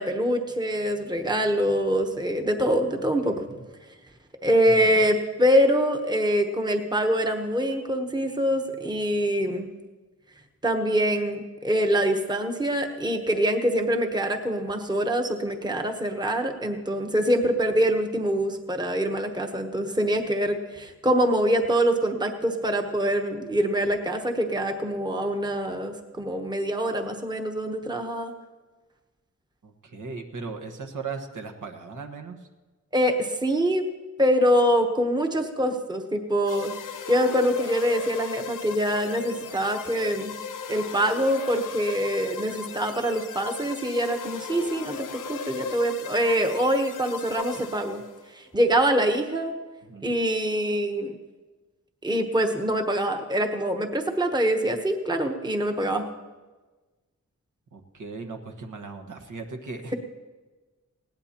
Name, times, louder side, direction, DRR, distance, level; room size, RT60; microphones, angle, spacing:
voice 1, 0.0-3.4 4.4-9.7 10.6-28.3 32.9-33.8 34.2-40.3 40.7-48.0 48.3-49.5 50.0-51.1 52.0-56.1, equal, 15° right, 4 dB, 1.0 m, -24 dB
voice 2, 2.9-3.7 4.7-5.0 29.6-32.5 49.8-50.1 57.7-59.9, right 4 dB, 80° right, 5 dB, 1.4 m, -38 dB
sound 1, 36.5-48.2, left 6 dB, 90° left, 0.7 m, -37 dB
20.0 x 17.0 x 2.9 m, 1.3 s
wide cardioid pair, 160°, 31 cm